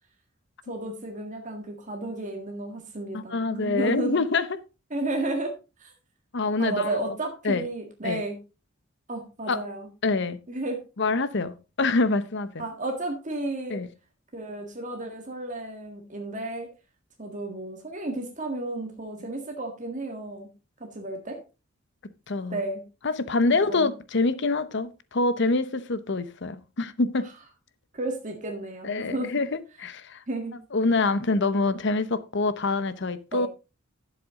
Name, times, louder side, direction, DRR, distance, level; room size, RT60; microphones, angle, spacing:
voice 1, 0.7-4.2 4.9-5.5 5.8-5.9 6.6-8.4 9.1-9.9 10.5-10.8 12.6-13.8 14.3-16.7 17.2-20.5 20.8-21.4 22.5-22.8 23.5-23.9 27.9-29.3 30.3-30.6 33.3-33.5, right 2 dB, 40° right, 1.8 m, -32 dB
voice 2, 3.1-4.6 6.3-7.0 7.4-7.6 8.0-8.2 9.5-9.6 10.0-10.4 11.0-12.6 13.7-13.9 22.3-22.6 23.0-27.3 28.8-30.2 30.7-33.5, left 3 dB, 60° left, 0.8 m, -26 dB
11.5 x 7.5 x 3.7 m
head